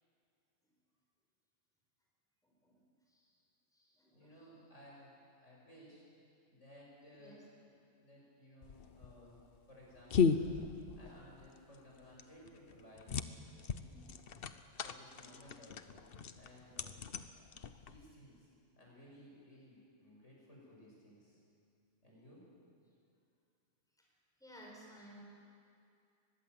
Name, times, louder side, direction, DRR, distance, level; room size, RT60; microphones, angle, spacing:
voice 1, 2.4-2.8 3.1-3.2 3.7-4.5 7.2-7.4 24.4-25.2, equal, 5° left, -3 dB, 5.0 m, -57 dB
voice 2, 4.1-5.1 5.4-6.0 6.5-7.7 8.0-9.4 9.7-10.4 11.0-14.2 14.8-16.1 16.3-16.9 17.8-21.4 22.0-22.4, equal, 70° left, -4 dB, 7.0 m, -58 dB
sound 1, 8.6-18.1, left 6 dB, 50° left, 1.0 m, -37 dB
22.5 x 20.5 x 7.9 m, 2.4 s
omnidirectional pair, 1.3 m